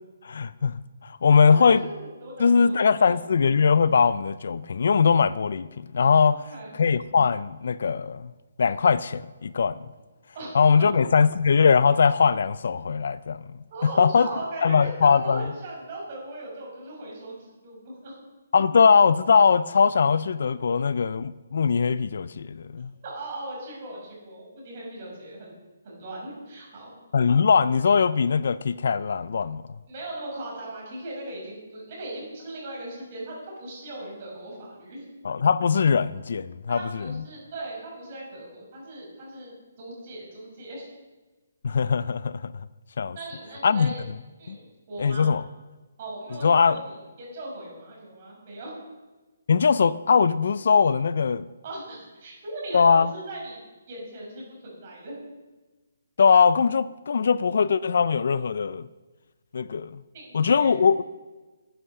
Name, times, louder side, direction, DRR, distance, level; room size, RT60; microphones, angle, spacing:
voice 1, 0.2-0.7 1.0-1.8 2.4-5.7 5.9-6.4 6.7-8.3 8.6-9.8 10.5-13.4 14.0-14.3 14.6-15.4 18.5-22.9 27.1-29.6 35.2-36.8 41.6-42.5 43.0-43.2 43.6-43.9 44.5-44.6 45.0-45.4 46.4-46.8 49.5-51.5 52.7-53.1 56.2-58.9 59.5-60.0 60.3-61.0, left 5 dB, 55° left, 0.4 m, -21 dB
voice 2, 1.3-3.1 6.3-6.8 10.3-10.5 10.8-10.9 13.7-18.2 23.0-25.5 25.8-26.9 29.9-35.1 36.7-40.9 43.1-44.0 44.4-45.3 46.0-48.8 51.6-53.6 53.9-55.2 60.1-60.7, right 1 dB, 30° right, 5.2 m, -38 dB
10.0 x 9.9 x 6.7 m
hypercardioid pair, 175°, 0 cm